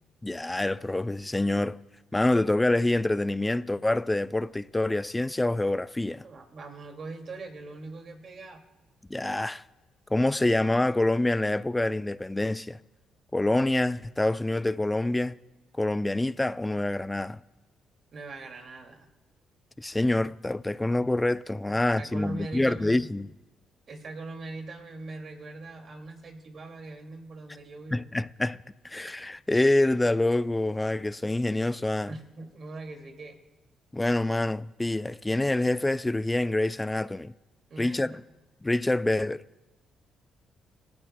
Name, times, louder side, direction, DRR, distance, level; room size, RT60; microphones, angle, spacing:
voice 1, 0.2-1.8 2.1-6.3 9.1-9.6 10.1-12.8 13.3-15.3 15.8-17.4 19.8-23.3 27.9-28.6 28.8-32.1 33.9-37.3 37.8-38.1 38.6-39.4, left 2 dB, 15° left, 0.4 m, -26 dB
voice 2, 6.2-8.6 18.1-19.1 21.7-23.1 23.9-28.1 31.2-31.3 32.1-33.4 37.7-38.2, right 3 dB, 50° right, 2.2 m, -41 dB
28.0 x 14.0 x 2.2 m
cardioid pair, 90°, 0 cm